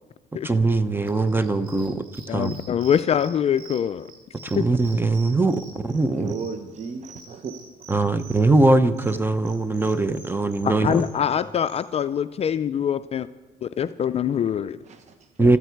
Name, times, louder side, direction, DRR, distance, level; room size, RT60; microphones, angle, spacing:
voice 1, 0.4-2.0 2.3-2.6 4.4-6.3 7.9-11.0 15.4-15.6, right 2 dB, 10° right, 12 dB, 0.7 m, -21 dB
sound 1, 1.1-11.8, right 4 dB, 80° right, 3.6 m, -47 dB
voice 2, 2.3-4.1 4.6-4.7 10.6-13.3 13.6-14.8, left 8 dB, 35° left, 11 dB, 0.4 m, -24 dB
voice 3, 6.1-7.7 8.1-8.2 14.8-15.3, right 5 dB, 40° right, 7 dB, 0.9 m, -35 dB
22.0 x 13.5 x 4.6 m, 1.3 s
cardioid pair, 110°, 17 cm